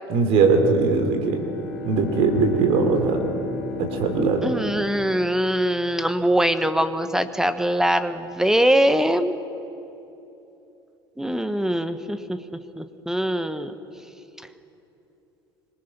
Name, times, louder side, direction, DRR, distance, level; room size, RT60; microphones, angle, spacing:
voice 1, 0.1-1.4 1.8-3.2 3.8-4.5, right 4 dB, 50° right, 5 dB, 3.8 m, -20 dB
Bowed string instrument, 1.1-5.9, left 2 dB, 60° left, 2.4 m, -34 dB
voice 2, 4.4-9.3 11.2-12.4 12.8-13.7, equal, 5° right, 11 dB, 1.3 m, -22 dB
25.5 x 22.0 x 6.1 m, 2.9 s
figure-of-eight pair, 70°, 13 cm